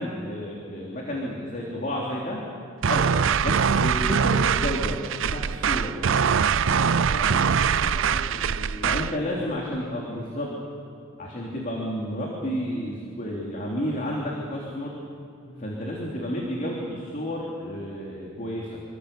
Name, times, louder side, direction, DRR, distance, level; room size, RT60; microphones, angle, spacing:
voice 1, 0.0-2.4 2.8-6.0 8.8-10.5 11.2-15.0 15.6-18.8, equal, 40° left, -3 dB, 3.3 m, -31 dB
sound 1, 2.8-9.2, right 6 dB, 60° right, 0.5 m, -23 dB
voice 2, 6.5-10.2 15.4-15.7, left 1 dB, 85° left, -7 dB, 5.8 m, -40 dB
27.0 x 24.5 x 6.9 m, 2.4 s
head